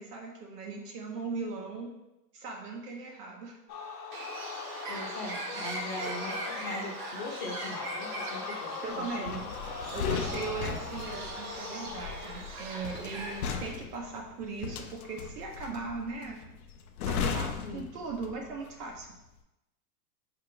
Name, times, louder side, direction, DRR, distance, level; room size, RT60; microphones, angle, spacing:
voice 1, 0.0-1.9 2.3-3.6 8.8-9.5 9.9-16.5 17.1-19.1, right 4 dB, 65° right, -1 dB, 0.9 m, -39 dB
sound 1, 3.7-12.6, left 5 dB, 85° left, 0.9 m, -41 dB
Bird, 4.1-13.7, right 2 dB, 30° right, 0.5 m, -41 dB
voice 2, 4.9-9.4 17.6-17.8, left 2 dB, 25° left, -1 dB, 0.8 m, -40 dB
sound 2, 9.3-18.6 18.9-19.2, left 6 dB, 60° left, 0.6 m, -36 dB
4.5 x 2.9 x 3.7 m, 0.94 s
hypercardioid pair, 145°, 50 cm